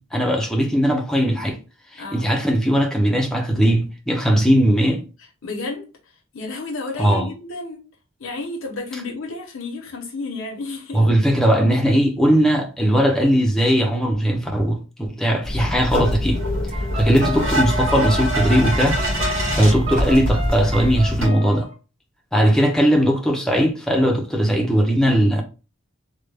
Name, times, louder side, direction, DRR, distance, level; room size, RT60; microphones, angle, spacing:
voice 1, 0.0-1.6 1.9-5.0 7.0-7.3 10.9-19.0 19.5-21.7 22.3-25.4, equal, 5° left, 0.5 m, -19 dB
voice 2, 2.0-2.3 5.4-5.9 6.3-7.8 8.2-11.1, left 3 dB, 85° left, 0.8 m, -31 dB
sound 1, 15.4-21.3, equal, 75° right, 1.6 m, -23 dB
sound 2, 16.7-21.7, right 1 dB, 30° right, 0.9 m, -32 dB
3.2 x 2.1 x 3.2 m
head